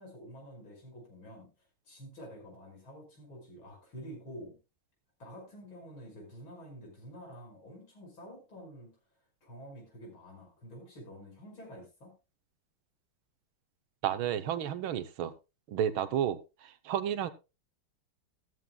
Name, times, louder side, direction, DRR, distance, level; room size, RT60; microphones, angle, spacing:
voice 1, 0.0-1.5 1.8-4.6 5.2-9.0 9.4-12.1, equal, 70° left, 1 dB, 6.3 m, -48 dB
voice 2, 14.0-15.3 15.7-16.4 16.6-17.3, right 10 dB, 75° right, 12 dB, 1.6 m, -31 dB
14.0 x 14.0 x 2.3 m, 0.27 s
omnidirectional pair, 2.3 m